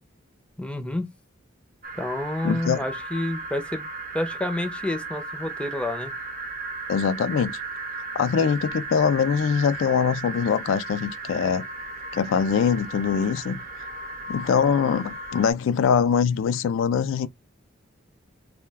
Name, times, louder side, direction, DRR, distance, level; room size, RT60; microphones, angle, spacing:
voice 1, 0.6-1.0 2.0-3.9 4.1-6.1, left 1 dB, 5° left, 0.5 m, -29 dB
sound 1, 1.8-15.5, right 3 dB, 45° right, 0.6 m, -36 dB
voice 2, 2.4-2.8 6.9-7.6 8.1-11.6 12.1-13.6 14.3-17.3, left 6 dB, 75° left, 0.3 m, -23 dB
2.2 x 2.1 x 3.3 m
head